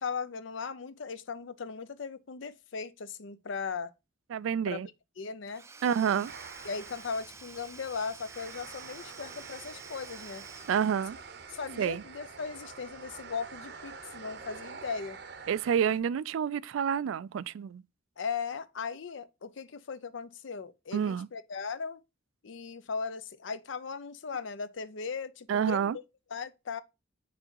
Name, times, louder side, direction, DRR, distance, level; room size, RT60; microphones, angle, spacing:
voice 1, 0.0-3.9 4.7-4.8 5.2-5.6 6.1-6.3 6.6-10.4 11.5-15.2 18.2-22.0 22.4-25.9 26.3-26.8, left 5 dB, 75° left, 0.6 m, -38 dB
voice 2, 4.3-4.9 5.8-6.3 10.7-11.2 11.8-12.0 15.5-17.8 20.9-21.3 25.5-26.0, right 8 dB, 90° right, 0.3 m, -28 dB
Domestic sounds home sounds / Tools, 5.5-11.6, right 4 dB, 15° right, 0.4 m, -50 dB
sound 1, 6.2-16.0, right 5 dB, 60° right, 0.7 m, -47 dB
6.0 x 3.9 x 4.5 m
head